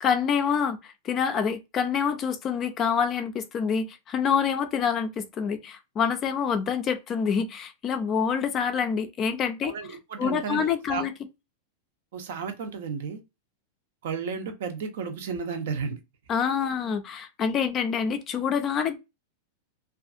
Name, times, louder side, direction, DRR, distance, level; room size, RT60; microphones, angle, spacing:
voice 1, 0.0-0.8 1.0-9.7 10.2-11.1 16.3-19.0, left 7 dB, 25° left, 0.3 m, -26 dB
voice 2, 9.6-11.0 12.1-13.2 14.0-16.0, right 5 dB, 65° right, 0.6 m, -33 dB
2.5 x 2.4 x 2.4 m
supercardioid pair, 155°, 0 cm